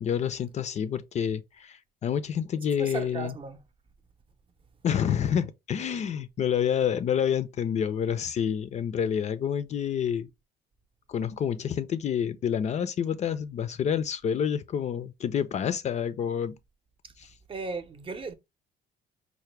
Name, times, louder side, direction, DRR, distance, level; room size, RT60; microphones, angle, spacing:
voice 1, 0.0-3.3 4.8-10.3 11.1-16.6 17.2-17.3, left 8 dB, 45° left, 0.4 m, -28 dB
voice 2, 2.8-3.6 17.5-18.3, right 4 dB, 30° right, 0.6 m, -35 dB
4.6 x 2.1 x 3.2 m
cardioid pair, 110°, 17 cm